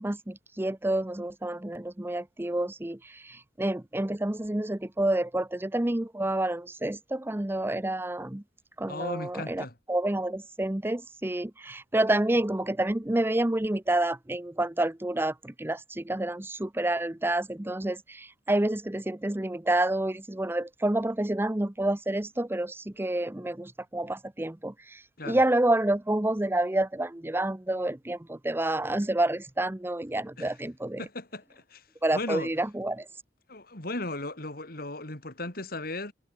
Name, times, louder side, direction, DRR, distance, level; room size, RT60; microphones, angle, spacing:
voice 1, 0.0-8.4 8.8-31.0 32.0-33.1, right 1 dB, 15° right, 0.7 m, -29 dB
voice 2, 8.9-9.7 25.2-25.4 30.4-30.5 31.0-31.9 32.1-32.5 33.5-36.1, left 2 dB, 55° left, 4.3 m, -36 dB
head